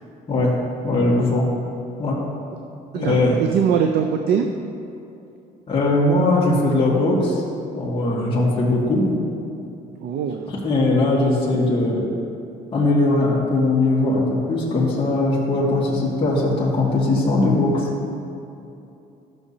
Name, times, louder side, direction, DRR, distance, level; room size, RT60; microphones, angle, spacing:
voice 1, 0.8-1.5 2.0-2.2 2.9-3.4 5.7-7.4 7.7-9.0 10.5-12.1 12.7-17.9, left 2 dB, 30° left, -6 dB, 2.0 m, -20 dB
voice 2, 2.9-4.5 10.0-10.5, right 7 dB, 70° right, 5 dB, 0.5 m, -22 dB
13.0 x 6.3 x 2.8 m, 2.7 s
cardioid pair, 110°, 17 cm